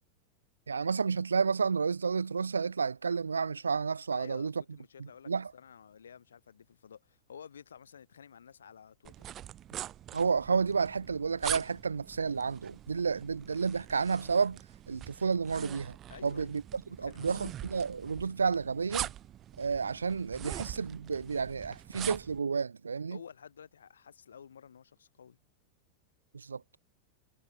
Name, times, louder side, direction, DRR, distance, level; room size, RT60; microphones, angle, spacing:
voice 1, 0.7-4.5 5.0-5.5 10.1-14.6 14.9-16.0 16.2-19.1 19.6-23.2 26.3-26.6, right 5 dB, 75° right, 1.4 m, -31 dB
voice 2, 4.1-9.3 16.1-16.5 17.0-17.5 23.1-25.4, left 7 dB, 70° left, 7.7 m, -52 dB
sound 1, 9.0-22.4, right 12 dB, 30° right, 3.0 m, -43 dB
figure-of-eight pair, 90°, 0 cm